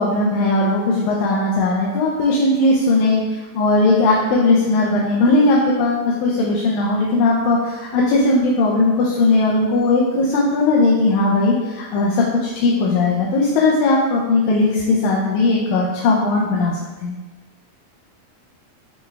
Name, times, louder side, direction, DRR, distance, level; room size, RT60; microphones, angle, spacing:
voice 1, 0.0-17.2, left 2 dB, 80° left, -3 dB, 1.9 m, -18 dB
6.5 x 2.2 x 3.2 m, 1.2 s
omnidirectional pair, 3.4 m